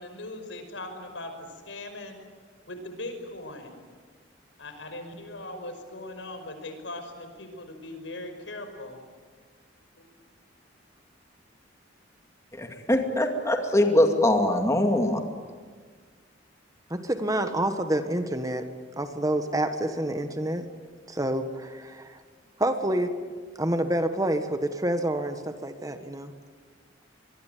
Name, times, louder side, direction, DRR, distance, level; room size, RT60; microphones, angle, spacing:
voice 1, 0.0-1.3 1.6-2.2 2.7-3.7 4.6-9.0, left 2 dB, 85° left, 7 dB, 5.5 m, -39 dB
voice 2, 12.5-15.2, left 1 dB, 15° left, 4 dB, 2.4 m, -22 dB
voice 3, 16.9-18.7 19.0-20.7 21.1-22.2 22.6-23.2 23.6-26.3, right 1 dB, 20° right, 8 dB, 1.5 m, -28 dB
25.5 x 22.5 x 9.4 m, 1.5 s
head